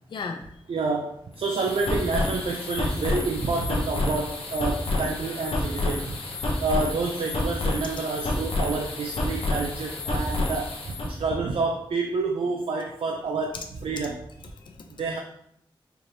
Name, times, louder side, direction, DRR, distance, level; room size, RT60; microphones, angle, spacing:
voice 1, 0.1-0.6 5.4-6.6 7.6-8.3 13.5-13.7 14.6-14.9, left 4 dB, 60° left, 4 dB, 0.4 m, -40 dB
voice 2, 0.7-6.2 6.6-13.6 13.8-14.2 15.0-15.2, right 3 dB, 80° right, 1 dB, 0.4 m, -28 dB
sound 1, 1.3-11.1, left 2 dB, 85° left, 0.7 m, -29 dB
4.4 x 3.2 x 2.6 m, 0.70 s
wide cardioid pair, 115°, 9 cm